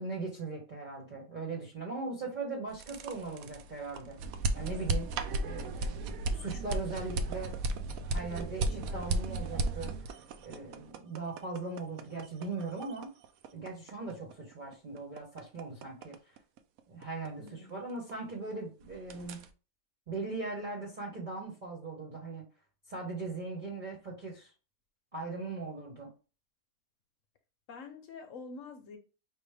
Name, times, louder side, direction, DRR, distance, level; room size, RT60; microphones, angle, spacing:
voice 1, 0.0-4.2 4.5-5.1 5.4-7.6 8.1-9.9 10.4-13.1 13.5-16.4 16.9-19.5 20.1-22.4 22.9-24.5 25.1-26.1, right 3 dB, 35° right, 1.2 m, -39 dB
sound 1, 2.7-18.5 18.8-19.5, right 2 dB, 75° right, 1.0 m, -35 dB
voice 2, 17.4-17.8 27.7-29.0, left 4 dB, 65° left, 1.1 m, -46 dB
5.2 x 2.5 x 3.4 m
omnidirectional pair, 1.6 m